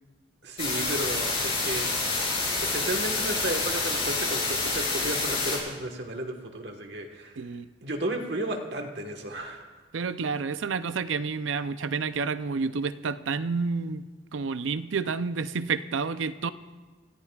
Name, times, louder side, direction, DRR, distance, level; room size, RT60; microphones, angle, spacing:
voice 1, 0.4-1.9 2.7-7.5 7.8-9.7, right 1 dB, 60° right, 4 dB, 1.4 m, -33 dB
sound 1, 0.6-5.6, left 3 dB, 30° left, 4.0 m, -28 dB
voice 2, 9.9-14.1 14.3-16.5, right 5 dB, 80° right, 13 dB, 0.5 m, -29 dB
28.0 x 14.0 x 2.4 m, 1.3 s
head